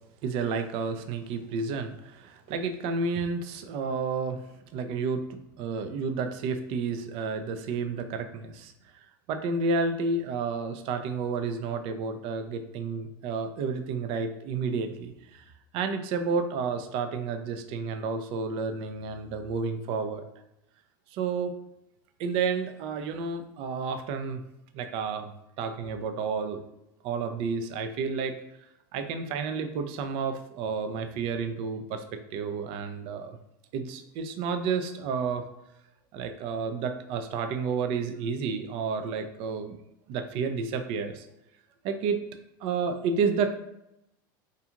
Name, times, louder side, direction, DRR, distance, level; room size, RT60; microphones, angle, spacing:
voice 1, 0.2-4.4 4.7-8.7 9.3-15.4 15.7-20.2 21.1-21.5 22.2-24.4 24.7-25.3 25.6-26.6 27.0-28.4 28.9-33.4 33.7-35.4 36.1-39.8 40.1-41.2 41.8-42.2 42.6-43.5, right 5 dB, 55° right, 7 dB, 0.4 m, -31 dB
2.5 x 2.3 x 2.8 m, 0.84 s
hypercardioid pair, 100°, 11 cm